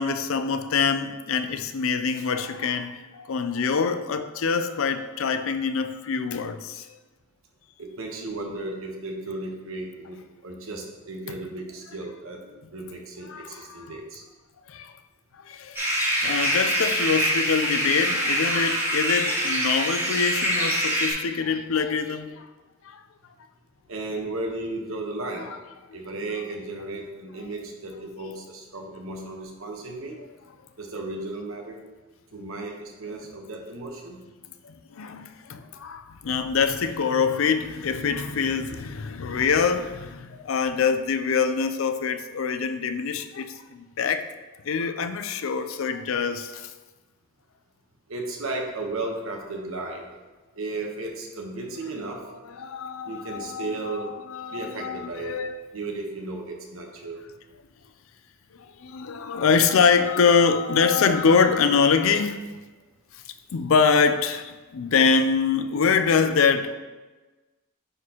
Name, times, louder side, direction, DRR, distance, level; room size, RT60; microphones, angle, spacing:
voice 1, 0.0-6.9 11.3-11.4 13.3-14.0 14.7-14.9 15.5-15.9 16.2-22.5 22.8-23.0 34.6-44.2 44.6-46.7 52.1-55.6 58.8-62.6 63.1-63.2 63.5-66.8, left 5 dB, 80° left, 0.4 m, -24 dB
voice 2, 7.8-12.4 12.7-14.2 23.9-25.5 25.9-30.2 30.8-31.8 32.3-34.2 48.1-50.1 50.5-52.2 53.0-54.1 54.5-55.3 55.7-57.2, right 2 dB, 85° right, 1.1 m, -34 dB
sound 1, 15.7-21.1, equal, 10° right, 1.9 m, -24 dB
9.1 x 4.2 x 2.9 m
head